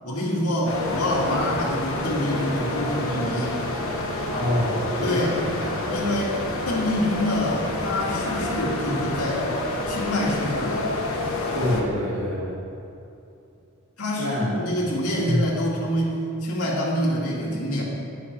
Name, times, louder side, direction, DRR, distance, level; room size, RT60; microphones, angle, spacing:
voice 1, 0.0-3.6 5.0-5.4 5.9-6.4 6.7-9.5 9.9-10.9 14.0-17.8, left 1 dB, 80° left, -4 dB, 2.2 m, -26 dB
sound 1, 0.7-11.8, left 2 dB, 65° left, 1.3 m, -28 dB
voice 2, 4.3-5.8 11.5-12.5 14.2-14.5 15.2-15.4, left 1 dB, 60° right, -10 dB, 2.7 m, -26 dB
11.0 x 5.9 x 6.1 m, 2.7 s
head